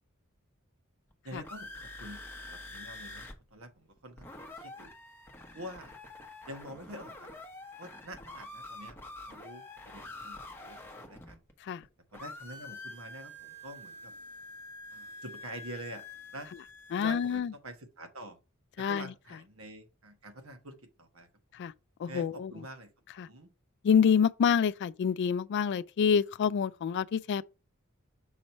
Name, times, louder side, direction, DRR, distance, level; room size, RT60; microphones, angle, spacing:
sound 1, 1.1-3.3 3.6-3.7 4.0-11.8 12.1-17.4, left 2 dB, 10° left, 1.0 m, -47 dB
voice 1, 1.2-4.3 4.6-4.9 5.5-6.0 6.5-7.3 7.8-8.9 9.2-11.4 12.1-14.1 14.9-16.0 16.3-16.5 17.0-18.4 18.8-21.3 22.1-23.5, right 1 dB, 75° right, 1.2 m, -46 dB
voice 2, 16.9-17.5 18.8-19.1 21.5-21.7 22.0-22.6 23.2-23.3 23.8-27.4, left 7 dB, 55° left, 0.3 m, -27 dB
6.3 x 3.0 x 5.2 m
head